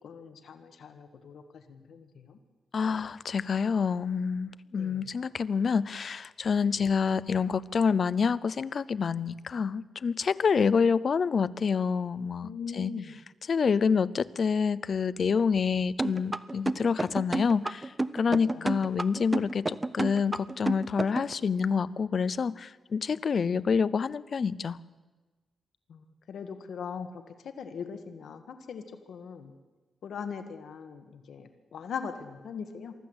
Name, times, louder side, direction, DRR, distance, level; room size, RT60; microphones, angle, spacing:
voice 1, 0.0-2.4 4.8-5.1 12.4-13.1 18.3-18.7 25.9-29.5 30.0-32.9, left 6 dB, 75° left, 8 dB, 1.4 m, -41 dB
voice 2, 2.7-12.5 12.8-12.9 13.5-24.8, left 6 dB, 45° left, 18 dB, 0.6 m, -27 dB
sound 1, 16.0-21.3, right 2 dB, 15° right, 0.6 m, -30 dB
23.5 x 14.5 x 7.9 m, 1.3 s
wide cardioid pair, 145°, 0 cm